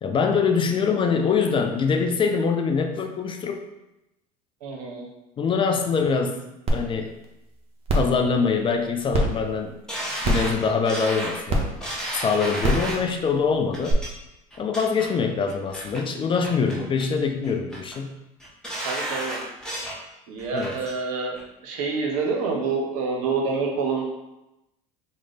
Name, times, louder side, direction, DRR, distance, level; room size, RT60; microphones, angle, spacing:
voice 1, 0.0-3.6 5.4-6.4 6.7-7.1 7.9-9.7 10.2-11.7 12.1-14.0 14.6-18.2 20.5-20.8, left 5 dB, 30° left, 5 dB, 0.4 m, -24 dB
voice 2, 4.6-5.1 18.8-19.4 20.3-24.0, right 4 dB, 70° right, 1 dB, 0.8 m, -27 dB
sound 1, 6.7-6.8 7.2-7.3 7.9-8.1 9.1-9.2 10.2-10.5 11.5-11.6 12.6-12.8 13.9-14.0, right 1 dB, 30° right, 0.8 m, -21 dB
sound 2, 9.9-13.1 13.7-14.1 14.5-15.1 15.5-16.0 16.4-17.1 17.4-18.0 18.4-20.0 20.4-21.0 21.4-21.5, right 1 dB, 5° left, 0.9 m, -33 dB
3.1 x 2.1 x 3.8 m, 0.93 s
hypercardioid pair, 80°, 19 cm